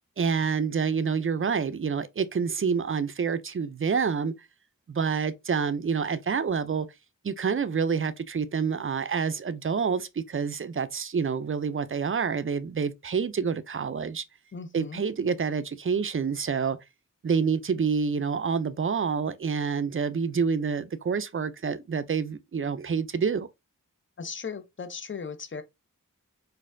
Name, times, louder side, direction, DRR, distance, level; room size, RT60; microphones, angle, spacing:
voice 1, 0.2-4.3 4.9-6.9 7.2-14.2 14.7-16.8 17.2-23.5, right 6 dB, 40° right, 0.4 m, -27 dB
voice 2, 14.5-15.0 24.2-25.6, left 5 dB, 35° left, 0.6 m, -37 dB
4.1 x 2.6 x 2.5 m
wide cardioid pair, 70°, 33 cm